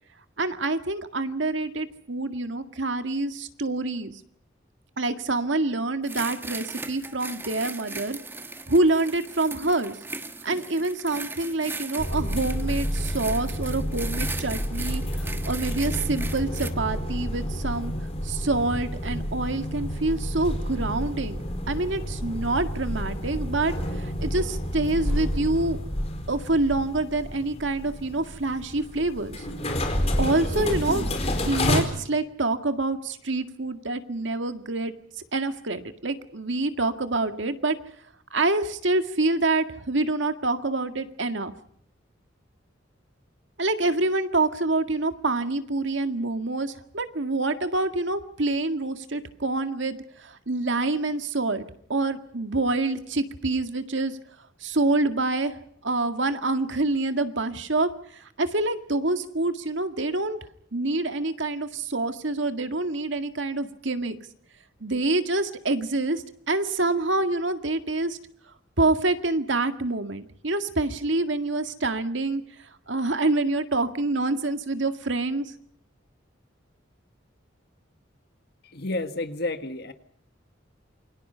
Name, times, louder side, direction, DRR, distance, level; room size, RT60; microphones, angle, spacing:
voice 1, 0.4-4.1 5.0-8.2 8.7-10.0 10.4-17.9 18.2-25.8 26.3-29.4 30.2-31.1 31.4-34.9 35.3-37.8 38.3-41.5 43.6-54.2 54.6-60.4 60.7-64.2 64.8-68.2 68.8-72.4 72.9-75.5, right 2 dB, 75° right, 8 dB, 1.9 m, -26 dB
sound 1, 6.0-16.7, right 3 dB, 10° right, 1.3 m, -38 dB
sound 2, 12.0-31.8, equal, 35° left, 4.4 m, -29 dB
voice 2, 78.6-79.9, left 2 dB, 55° left, 9 dB, 1.8 m, -30 dB
28.5 x 23.5 x 5.6 m, 0.66 s
head